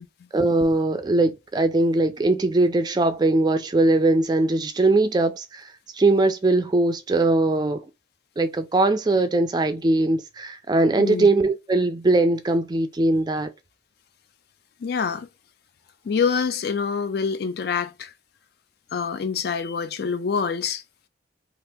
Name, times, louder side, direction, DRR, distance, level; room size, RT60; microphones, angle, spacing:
voice 1, 0.3-7.8 8.4-13.5, right 2 dB, 20° right, 0.3 m, -21 dB
voice 2, 11.0-11.3 14.8-15.3 16.0-18.1 18.9-20.8, left 6 dB, 55° left, 0.3 m, -26 dB
2.8 x 2.4 x 3.4 m
head